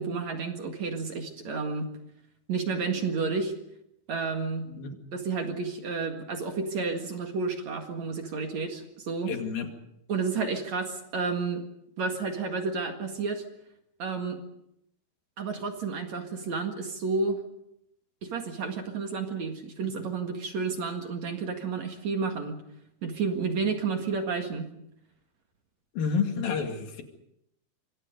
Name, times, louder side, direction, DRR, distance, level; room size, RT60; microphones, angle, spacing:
voice 1, 0.0-1.9 2.5-3.5 4.1-4.7 5.1-9.3 10.1-11.6 12.0-13.4 14.0-14.4 15.4-17.4 18.2-22.6 23.0-24.7, right 4 dB, 50° right, 4 dB, 2.8 m, -31 dB
voice 2, 9.3-9.7 26.0-27.0, left 6 dB, 65° left, 4 dB, 4.0 m, -29 dB
26.5 x 25.5 x 5.3 m, 0.78 s
omnidirectional pair, 4.5 m